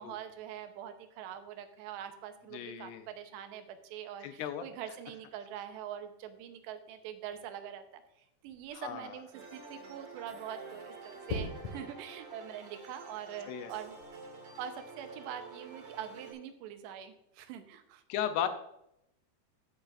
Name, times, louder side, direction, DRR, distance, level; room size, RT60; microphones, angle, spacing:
voice 1, 0.0-14.0 14.6-18.0, right 9 dB, 85° right, 8 dB, 2.9 m, -44 dB
voice 2, 2.5-3.0 4.2-4.6 8.7-9.2 13.5-13.7 18.1-18.5, left 10 dB, 80° left, 9 dB, 2.6 m, -35 dB
sound 1, 8.5-8.8 11.3-11.8 13.8-14.1, left 3 dB, 60° left, 2.0 m, -38 dB
sound 2, 9.3-16.3, right 3 dB, 45° right, 2.3 m, -49 dB
14.5 x 8.9 x 2.5 m, 0.79 s
omnidirectional pair, 5.0 m